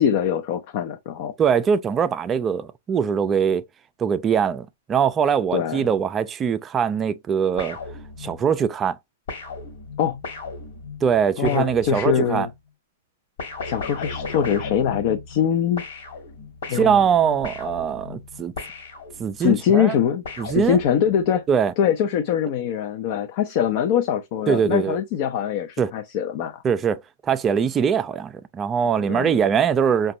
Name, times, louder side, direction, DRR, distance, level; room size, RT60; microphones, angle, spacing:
voice 1, 0.0-1.3 5.5-5.8 10.0-10.2 11.4-12.5 13.6-15.8 16.7-17.0 19.4-21.4 21.8-26.6 29.1-29.4, left 9 dB, 50° left, 0.5 m, -23 dB
voice 2, 1.4-3.6 4.0-7.8 8.2-9.0 11.0-12.5 16.7-18.5 19.2-19.9 20.4-20.8 21.5-21.7 24.5-25.0 25.8-25.9 26.6-30.1, right 7 dB, 25° right, 0.3 m, -22 dB
sound 1, 7.6-8.6 9.3-12.4 13.4-15.5 15.8-19.5 20.2-21.2, left 4 dB, 70° left, 1.4 m, -36 dB
4.9 x 2.3 x 2.8 m
hypercardioid pair, 120°, 0 cm